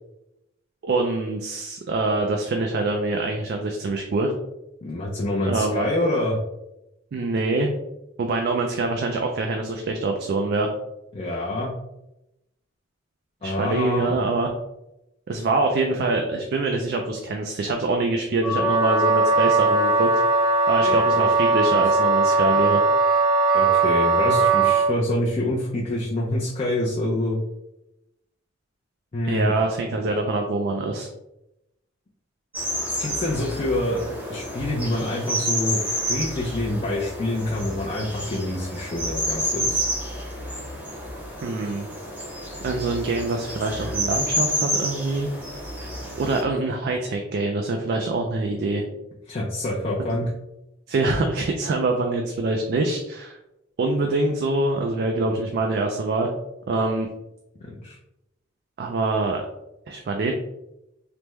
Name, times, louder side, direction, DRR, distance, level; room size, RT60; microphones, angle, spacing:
voice 1, 0.8-4.3 5.4-5.9 7.1-7.7 8.2-10.7 13.4-14.5 15.3-20.1 20.7-22.8 29.2-31.1 41.4-41.9 42.6-45.3 46.2-48.8 50.9-53.4 53.8-56.3 56.7-57.1 58.8-59.4 59.9-60.3, right 2 dB, 55° right, 3 dB, 0.3 m, -24 dB
voice 2, 4.8-6.4 11.1-11.7 13.4-14.1 20.8-20.9 21.7-21.8 23.5-27.4 29.1-29.5 32.9-34.0 34.3-39.8 49.3-50.3 57.6-58.0, left 1 dB, 35° left, -4 dB, 0.4 m, -26 dB
Wind instrument woodwind instrument, 18.4-24.9, right 3 dB, 80° right, 0.9 m, -19 dB
sound 1, 32.5-46.4, equal, 10° right, 0.8 m, -29 dB
3.3 x 2.1 x 3.0 m, 0.88 s
head